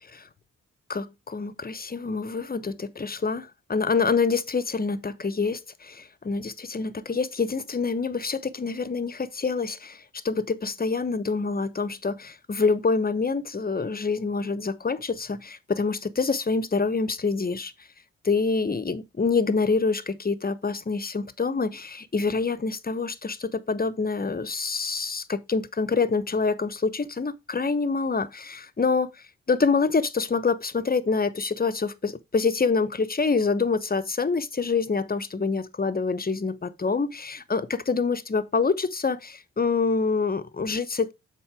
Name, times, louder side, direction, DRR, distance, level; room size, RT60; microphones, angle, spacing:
voice 1, 0.9-17.7 18.2-29.1 29.5-41.1, left 4 dB, 30° left, 1.0 m, -26 dB
7.2 x 4.4 x 4.8 m
supercardioid pair, 50°, 32 cm